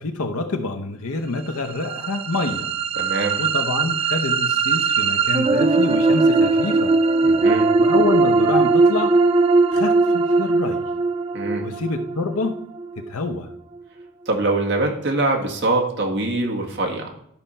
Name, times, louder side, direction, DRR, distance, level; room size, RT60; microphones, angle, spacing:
voice 1, 0.0-2.7 3.4-7.0 7.8-9.2 9.7-10.8 11.6-12.6 13.0-13.5, left 3 dB, 85° left, 0.9 m, -27 dB
sound 1, 1.5-13.5, right 3 dB, 25° right, 0.3 m, -19 dB
voice 2, 3.0-3.4 7.2-7.7 11.3-11.6 14.3-17.1, right 2 dB, 50° right, 1.7 m, -23 dB
12.0 x 4.4 x 5.5 m
head